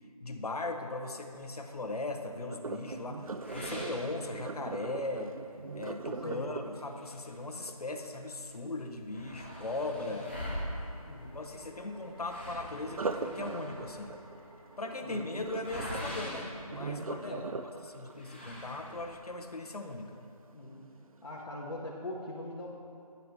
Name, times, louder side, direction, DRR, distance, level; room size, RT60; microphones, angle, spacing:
voice 1, 0.2-5.4 5.7-10.3 11.3-14.2 14.8-17.4 17.8-20.2, left 2 dB, 75° left, 4 dB, 0.8 m, -38 dB
Sink (filling or washing), 2.5-8.4 12.8-19.9 20.4-20.7 21.2-21.3, right 4 dB, 65° right, 0.4 m, -41 dB
sound 1, 3.4-4.9 5.3-5.4 5.9-6.0 6.8-8.1 8.4-8.5 8.7-17.5 18.1-19.3, equal, 20° left, 0.6 m, -43 dB
voice 2, 10.1-10.6 11.1-11.4 15.0-15.3 17.2-17.5 20.5-20.9 21.2-22.7, left 1 dB, 50° left, -5 dB, 1.0 m, -42 dB
sound 2, 10.6-21.9, equal, 40° right, 1.4 m, -59 dB
9.2 x 4.3 x 5.7 m, 2.5 s
figure-of-eight pair, 170°, 19 cm